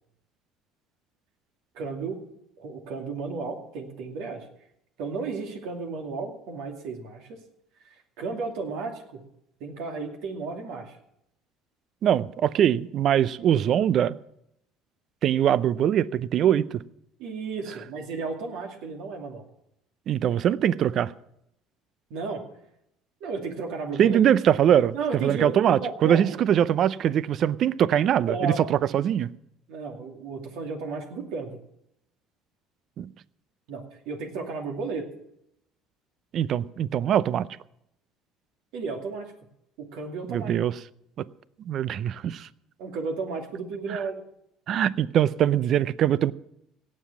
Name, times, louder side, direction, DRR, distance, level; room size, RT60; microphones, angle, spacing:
voice 1, 1.7-2.2 2.6-4.5 5.0-7.4 8.2-9.2 9.6-11.0 17.2-19.4 22.1-22.4 23.2-24.2 24.9-26.4 28.3-28.7 29.7-31.6 33.7-35.1 38.7-39.3 39.8-40.5 42.8-44.3, right 4 dB, 70° right, 2.5 m, -33 dB
voice 2, 12.0-14.2 15.2-16.8 20.1-21.1 24.0-25.0 25.2-29.3 33.0-33.1 36.3-37.5 40.3-40.7 41.2-41.3 41.7-42.5 43.9-44.0 44.7-46.3, right 10 dB, 55° right, 0.5 m, -22 dB
17.5 x 7.6 x 7.2 m
hypercardioid pair, 70°, 0 cm